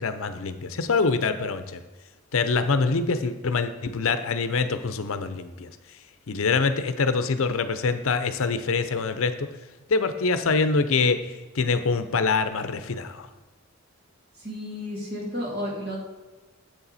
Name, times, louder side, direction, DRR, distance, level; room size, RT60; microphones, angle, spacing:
voice 1, 0.0-1.8 2.3-5.7 6.3-9.5 9.9-11.2 11.5-13.3, left 4 dB, 65° left, 10 dB, 0.6 m, -25 dB
voice 2, 14.4-16.0, equal, 45° right, -3 dB, 2.5 m, -32 dB
8.1 x 7.0 x 4.1 m, 1.2 s
head